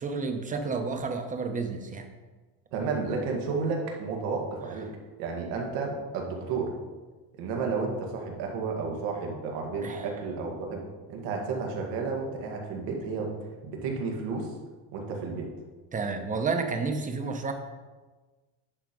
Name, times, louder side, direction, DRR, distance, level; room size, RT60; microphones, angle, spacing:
voice 1, 0.0-2.1 9.8-10.1 15.9-17.5, right 4 dB, 20° right, 6 dB, 0.8 m, -31 dB
voice 2, 2.7-4.9 5.2-6.7 7.4-10.8 11.1-13.3 13.6-14.5 14.9-15.5, right 4 dB, 90° right, 0 dB, 1.8 m, -32 dB
9.7 x 4.3 x 5.2 m, 1.3 s
cardioid pair, 145°, 41 cm